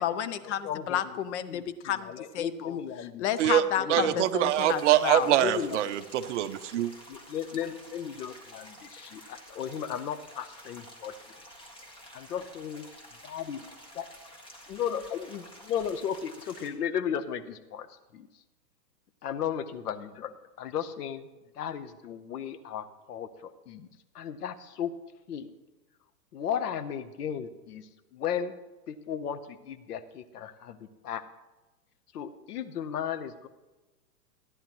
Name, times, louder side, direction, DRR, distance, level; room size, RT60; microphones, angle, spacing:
voice 1, 0.0-5.3, left 10 dB, 45° left, 13 dB, 0.8 m, -31 dB
voice 2, 0.6-1.0 1.5-1.6 2.1-3.2 3.8-4.1 5.3-5.8 7.1-11.1 12.1-12.9 13.2-13.7 13.9-14.1 14.7-17.9 18.1-18.3 19.2-21.3 21.6-23.9 24.1-24.9 25.3-25.5 26.3-28.5 28.9-30.8 31.0-31.2 32.1-33.5, left 8 dB, 70° left, 11 dB, 1.1 m, -35 dB
voice 3, 3.9-6.9, right 12 dB, 45° right, 12 dB, 0.7 m, -24 dB
sound 1, 4.4-16.7, equal, 10° left, 1.8 m, -50 dB
15.5 x 10.0 x 3.1 m, 1.1 s
hypercardioid pair, 130°, 49 cm